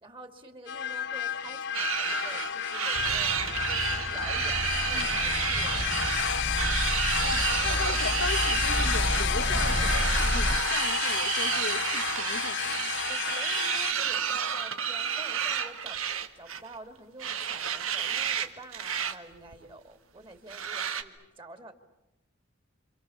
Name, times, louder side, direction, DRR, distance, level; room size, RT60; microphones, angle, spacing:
voice 1, 0.0-3.4 3.6-5.9 13.1-21.7, right 2 dB, 25° right, 2.6 m, -48 dB
sound 1, 0.7-13.9, left 8 dB, 60° left, 0.9 m, -31 dB
sound 2, 1.7-16.7 17.2-18.5 18.7-19.1 19.5-19.6 20.5-21.0, right 8 dB, 90° right, 1.7 m, -31 dB
sound 3, 2.9-10.6, equal, 5° right, 1.9 m, -32 dB
voice 2, 7.2-13.0, left 3 dB, 85° left, 1.5 m, -38 dB
28.0 x 27.5 x 7.1 m
head